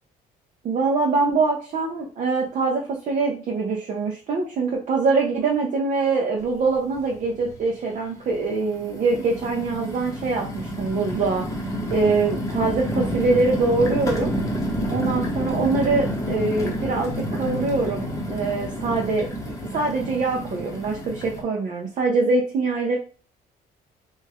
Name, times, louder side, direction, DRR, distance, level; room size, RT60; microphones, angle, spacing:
voice 1, 0.6-11.4 11.9-14.3 14.9-23.0, right 3 dB, 45° right, 0 dB, 0.6 m, -24 dB
sound 1, 6.4-6.5 6.9-7.6 8.2-21.4, equal, 20° left, 0.8 m, -29 dB
3.1 x 2.1 x 3.4 m, 0.39 s
cardioid pair, 110°, 17 cm